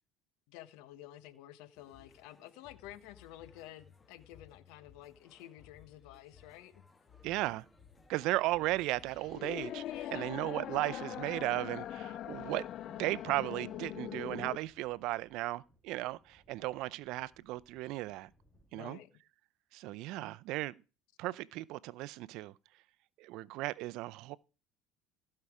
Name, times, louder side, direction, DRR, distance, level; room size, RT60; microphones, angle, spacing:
voice 1, 0.5-6.8 9.8-10.4 18.7-19.1, left 13 dB, 80° left, 1.0 m, -51 dB
sound 1, 1.7-9.4, left 7 dB, 20° left, 1.5 m, -61 dB
sound 2, 7.2-18.8, equal, 5° left, 5.0 m, -69 dB
voice 2, 7.2-7.6 8.1-9.8 10.1-12.7 13.0-18.3 18.7-19.0 19.7-20.8 21.2-22.5 23.2-24.4, right 18 dB, 70° right, 0.5 m, -36 dB
sound 3, 8.6-14.6, left 12 dB, 55° left, 0.4 m, -42 dB
15.5 x 5.6 x 4.9 m
supercardioid pair, 105°, 0 cm